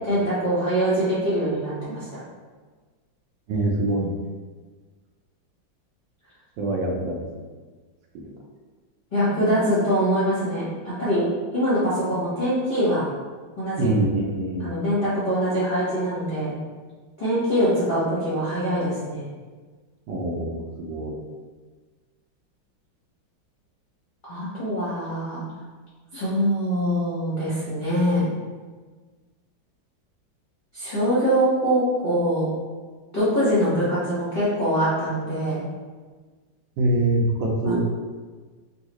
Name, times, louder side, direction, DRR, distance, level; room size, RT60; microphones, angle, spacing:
voice 1, 0.0-2.1 9.1-11.2 11.5-13.0 13.6-13.9 14.6-16.5 17.2-19.2 24.2-25.4 26.1-28.3 30.7-32.5 33.1-35.6 37.6-37.7, equal, 45° left, -12 dB, 0.6 m, -23 dB
voice 2, 3.5-4.2 6.6-7.2 13.8-14.7 20.1-21.1 36.8-37.8, right 2 dB, 75° right, 0 dB, 1.3 m, -24 dB
3.6 x 2.3 x 2.9 m, 1.4 s
omnidirectional pair, 2.2 m